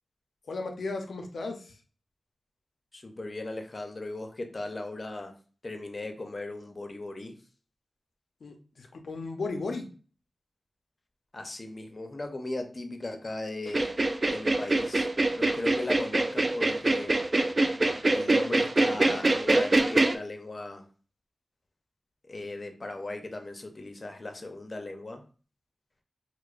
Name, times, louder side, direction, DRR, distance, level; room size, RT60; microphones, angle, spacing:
voice 1, 0.5-1.8 8.4-9.9, left 3 dB, 85° left, 4 dB, 0.6 m, -35 dB
voice 2, 2.9-5.3 5.6-7.4 11.3-13.9 14.3-15.1 15.3-17.2 18.1-20.9 22.3-25.2, left 2 dB, 35° left, 5 dB, 0.5 m, -37 dB
sound 1, 13.7-20.1, right 2 dB, 35° right, 0.3 m, -24 dB
4.7 x 2.0 x 2.4 m, 0.39 s
wide cardioid pair, 110°, 0 cm